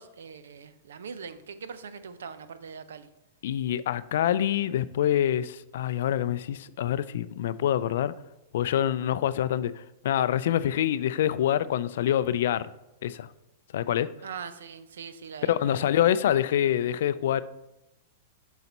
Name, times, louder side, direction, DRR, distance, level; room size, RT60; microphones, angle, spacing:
voice 1, 0.0-3.1 14.2-15.9, right 6 dB, 85° right, 0.5 m, -42 dB
voice 2, 3.4-8.1 8.5-12.7 13.0-13.3 13.7-14.1 15.5-17.4, left 11 dB, 70° left, 0.3 m, -26 dB
7.0 x 4.0 x 4.2 m
hypercardioid pair, 125°, 0 cm